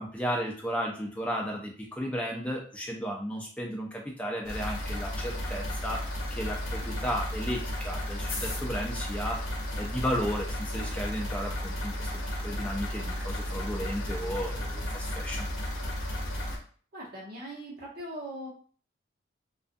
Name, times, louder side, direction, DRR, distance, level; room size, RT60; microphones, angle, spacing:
voice 1, 0.0-15.5, equal, 5° left, -1 dB, 0.4 m, -34 dB
sound 1, 4.5-16.6, left 1 dB, 80° left, 0.7 m, -33 dB
voice 2, 16.9-18.5, right 1 dB, 50° right, -5 dB, 1.0 m, -40 dB
2.4 x 2.4 x 2.5 m, 0.43 s
head